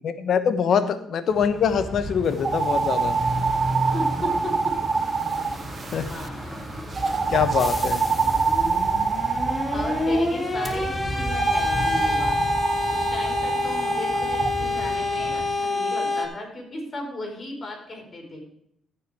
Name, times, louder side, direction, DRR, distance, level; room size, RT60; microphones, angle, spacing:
voice 1, 0.0-3.2 5.9-6.1 7.3-8.1, left 7 dB, 60° left, 11 dB, 1.0 m, -24 dB
sound 1, 1.3-15.5, right 1 dB, ahead, 4.2 m, -34 dB
sound 2, 2.4-6.3 6.9-10.2 11.3-14.5, right 5 dB, 40° right, 0.8 m, -25 dB
voice 2, 3.9-4.7 5.3-5.7 6.1-6.5 6.8-6.9 9.7-12.4 12.9-18.4, left 1 dB, 35° left, 0 dB, 4.1 m, -36 dB
sound 3, 7.6-16.3, left 2 dB, 15° left, 1.8 m, -27 dB
14.5 x 5.6 x 4.8 m, 0.71 s
cardioid pair, 90°, 0 cm